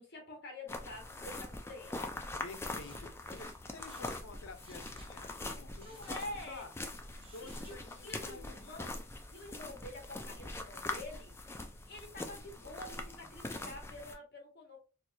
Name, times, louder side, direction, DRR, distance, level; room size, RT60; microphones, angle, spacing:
voice 1, 0.0-2.1 5.8-6.7 7.4-9.0 9.3-11.6 11.9-14.8, left 2 dB, 55° left, 1.4 m, -47 dB
sound 1, 0.7-14.1, left 2 dB, 10° left, 0.4 m, -43 dB
voice 2, 2.4-6.2 6.5-6.7 7.2-9.0, left 3 dB, 75° left, 0.6 m, -51 dB
Mechanisms, 2.8-5.2 5.5-6.7 7.1-8.1 8.4-8.5, right 2 dB, 30° right, 0.9 m, -60 dB
4.4 x 2.3 x 2.6 m
head